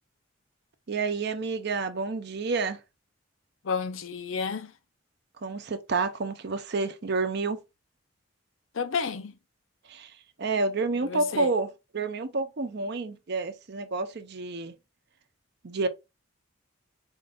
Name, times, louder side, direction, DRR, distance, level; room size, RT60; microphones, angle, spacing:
voice 1, 0.9-2.8 5.4-7.6 9.9-10.1 10.4-14.7 15.6-15.9, right 3 dB, 55° right, 0.6 m, -29 dB
voice 2, 3.6-4.7 8.7-9.3 11.0-11.5, left 5 dB, 80° left, 0.6 m, -31 dB
4.4 x 2.5 x 3.6 m
head